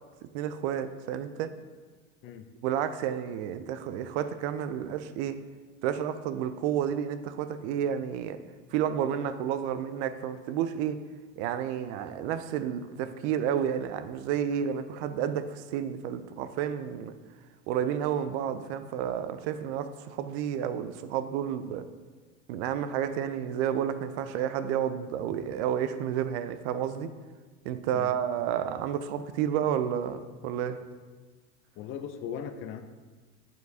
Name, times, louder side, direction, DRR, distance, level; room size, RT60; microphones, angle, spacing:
voice 1, 0.3-1.5 2.6-5.4 5.8-8.4 8.7-11.0 11.4-17.1 17.7-21.9 22.5-27.1 27.6-30.8, right 9 dB, 65° right, 0.5 m, -31 dB
voice 2, 31.8-32.8, left 8 dB, 35° left, 0.4 m, -38 dB
8.1 x 4.5 x 2.7 m
hypercardioid pair, 95°, 38 cm